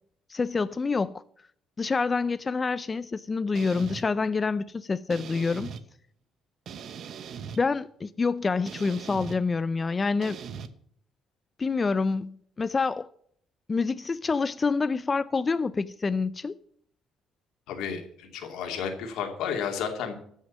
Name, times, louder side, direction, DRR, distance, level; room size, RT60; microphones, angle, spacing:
voice 1, 0.3-1.2 1.8-5.7 7.6-10.4 11.6-13.1 13.7-16.5, left 4 dB, 25° left, 0.4 m, -27 dB
sound 1, 3.5-4.0 5.1-5.8 6.7-7.6 8.7-9.4 10.2-10.7, right 7 dB, 60° right, 1.0 m, -39 dB
voice 2, 17.7-20.1, left 7 dB, 85° left, 2.6 m, -32 dB
13.5 x 6.4 x 7.1 m
cardioid pair, 120°, 0 cm